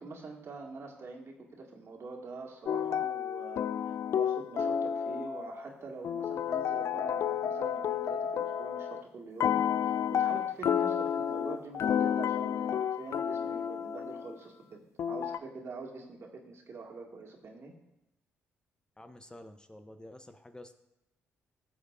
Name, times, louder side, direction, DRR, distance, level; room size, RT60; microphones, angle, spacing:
voice 1, 0.0-3.7 4.1-17.7, right 3 dB, 50° right, 0 dB, 1.9 m, -45 dB
sound 1, 2.7-5.6 6.0-9.0 9.4-14.3 15.0-15.4, left 8 dB, 55° left, 0.3 m, -31 dB
voice 2, 19.0-20.7, left 1 dB, 15° left, 8 dB, 0.6 m, -50 dB
14.5 x 6.4 x 2.5 m, 0.91 s
supercardioid pair, 55°, 6 cm